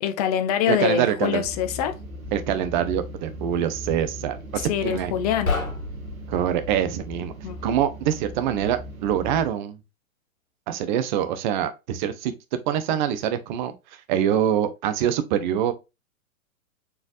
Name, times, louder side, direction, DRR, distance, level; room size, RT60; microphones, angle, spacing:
voice 1, 0.0-2.0 4.7-5.6 7.4-7.6, left 9 dB, 30° left, 0.5 m, -24 dB
voice 2, 0.7-1.4 2.3-5.1 6.3-7.3 7.6-9.8 10.7-12.3 12.7-13.7 14.1-15.7, right 10 dB, 35° right, 0.6 m, -24 dB
sound 1, 1.4-9.5, equal, 75° right, 1.4 m, -38 dB
sound 2, 5.4-6.9, left 3 dB, 75° left, 1.7 m, -30 dB
4.5 x 3.3 x 2.5 m
figure-of-eight pair, 110°, 42 cm